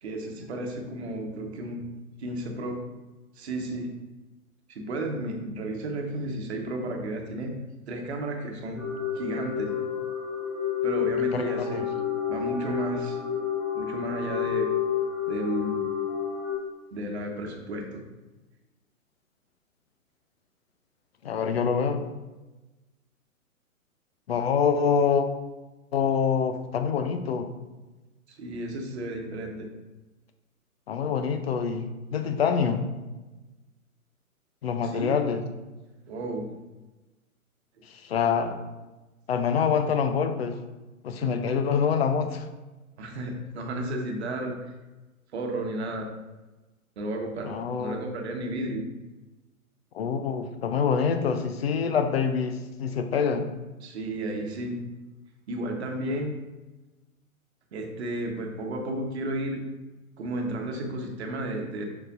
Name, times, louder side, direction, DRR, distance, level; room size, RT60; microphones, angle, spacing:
voice 1, 0.0-1.9 2.2-2.8 3.3-3.9 4.7-7.5 7.9-8.9 9.1-9.7 10.8-11.8 12.3-13.2 13.7-14.7 15.3-15.8 16.9-18.1 28.3-29.7 34.8-35.1 36.1-36.5 41.2-41.4 43.0-44.6 45.3-46.1 47.0-48.8 53.8-54.8 55.5-56.3 57.7-59.6 60.2-61.8, right 1 dB, 50° right, 3 dB, 1.2 m, -33 dB
sound 1, 8.8-16.5, left 8 dB, 5° right, 0.8 m, -29 dB
voice 2, 11.3-11.8 21.2-22.0 24.3-25.3 25.9-27.5 30.9-32.9 34.6-35.4 37.9-38.6 39.3-40.6 41.0-42.5 47.4-48.0 49.9-53.5, left 6 dB, 45° left, 7 dB, 0.7 m, -26 dB
6.5 x 5.9 x 2.5 m, 1.1 s
figure-of-eight pair, 120°, 43 cm